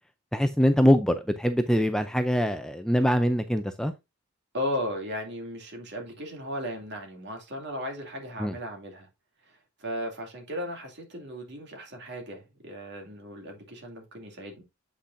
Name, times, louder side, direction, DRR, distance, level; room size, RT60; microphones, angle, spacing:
voice 1, 0.3-3.9 8.4-8.6, equal, 5° left, 0.5 m, -23 dB
voice 2, 4.5-9.1 9.5-14.6, equal, 55° right, 2.5 m, -36 dB
8.4 x 5.9 x 2.6 m
head